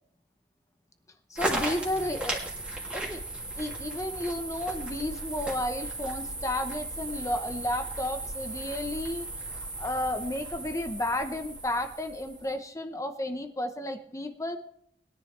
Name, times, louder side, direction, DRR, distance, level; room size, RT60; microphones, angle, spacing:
voice 1, 1.3-2.4 2.9-3.2 3.6-9.3 9.6-14.6, left 1 dB, 20° left, 7 dB, 0.9 m, -32 dB
sound 1, 1.4-12.5, right 2 dB, 5° right, 2.6 m, -36 dB
21.0 x 10.5 x 3.3 m, 0.68 s
head